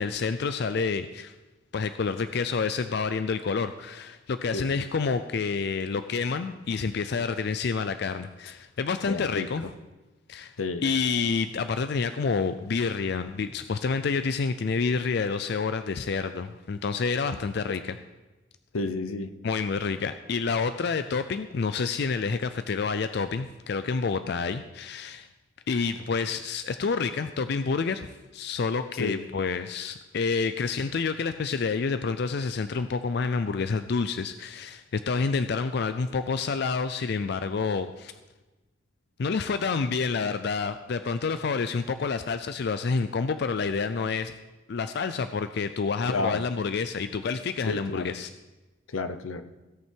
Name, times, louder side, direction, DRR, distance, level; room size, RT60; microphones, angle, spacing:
voice 1, 0.0-1.3 1.7-9.6 10.3-10.5 10.8-17.9 19.4-25.3 25.7-28.1 28.3-38.1 39.2-44.3 44.7-48.3, left 5 dB, 55° left, 10 dB, 0.4 m, -28 dB
voice 2, 9.0-9.5 10.6-10.8 17.7-17.8 18.7-19.3 29.0-29.2 46.1-46.4 47.6-48.1 48.9-49.5, left 3 dB, 85° left, 11 dB, 0.7 m, -31 dB
16.5 x 5.8 x 4.5 m, 1.1 s
head